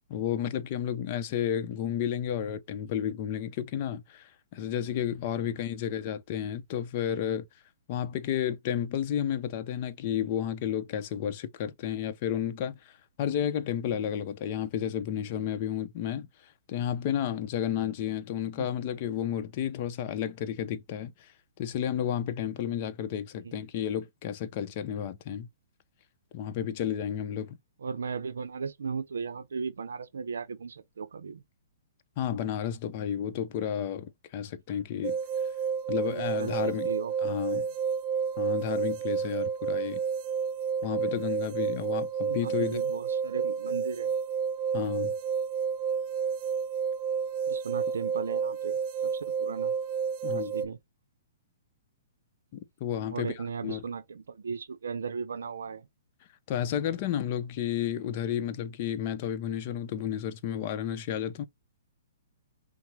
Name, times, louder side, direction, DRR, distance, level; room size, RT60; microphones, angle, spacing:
voice 1, 0.1-7.4 7.9-12.9 13.2-21.3 21.6-25.5 26.3-27.6 32.2-35.2 35.9-36.9 37.2-37.7 38.4-40.0 40.8-42.8 44.7-45.1 50.2-50.6 52.5-53.3 53.6-53.8 56.5-61.4, left 9 dB, 40° left, 0.6 m, -32 dB
voice 2, 27.8-31.4 36.1-37.7 42.3-44.1 47.5-49.7 50.3-50.8 53.1-55.9, right 5 dB, 90° right, 0.5 m, -37 dB
sound 1, 35.0-50.7, right 6 dB, 40° right, 0.5 m, -30 dB
5.8 x 2.0 x 3.0 m
hypercardioid pair, 155°, 0 cm